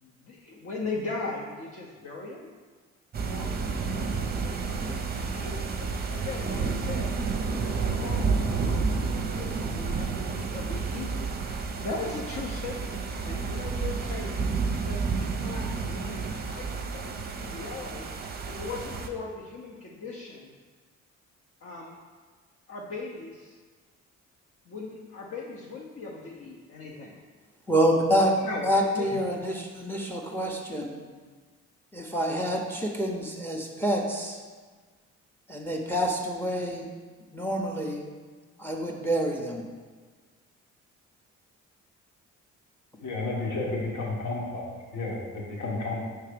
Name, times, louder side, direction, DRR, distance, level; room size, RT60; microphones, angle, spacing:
voice 1, 0.0-2.5 3.2-3.5 4.7-7.2 7.6-14.5 14.9-18.1 18.5-20.5 21.6-21.9 22.7-23.6 24.7-27.2 28.4-28.7 28.9-29.4, left 3 dB, 50° left, -3 dB, 0.8 m, -39 dB
sound 1, 3.1-19.1, right 4 dB, 30° right, 0.6 m, -30 dB
voice 2, 27.7-31.0 31.9-34.4 35.5-36.9 37.3-38.0 38.6-39.6, equal, 5° left, 1 dB, 0.7 m, -27 dB
voice 3, 43.0-46.1, left 2 dB, 75° left, -3 dB, 1.6 m, -32 dB
5.6 x 3.4 x 5.1 m, 1.5 s
cardioid pair, 90°, 30 cm